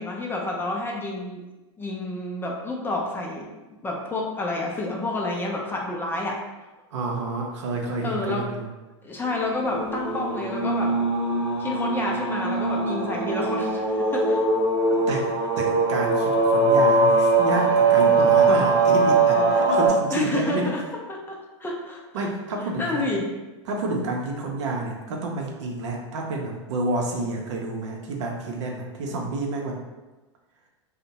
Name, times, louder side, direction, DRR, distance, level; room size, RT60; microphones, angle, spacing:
voice 1, 0.0-1.4 1.8-3.5 3.8-6.4 8.0-8.5 9.0-10.9 11.6-14.4 15.1-15.2 20.1-20.8 21.1-22.3 22.8-23.3, left 2 dB, 15° left, -1 dB, 0.4 m, -29 dB
voice 2, 6.9-8.7 15.1-15.2 15.6-20.7 22.1-23.1 23.7-29.8, right 2 dB, 70° right, 0 dB, 0.6 m, -29 dB
sound 1, 9.6-19.9, right 3 dB, 25° right, 0.7 m, -21 dB
2.6 x 2.1 x 2.9 m, 1.1 s
hypercardioid pair, 110°, 16 cm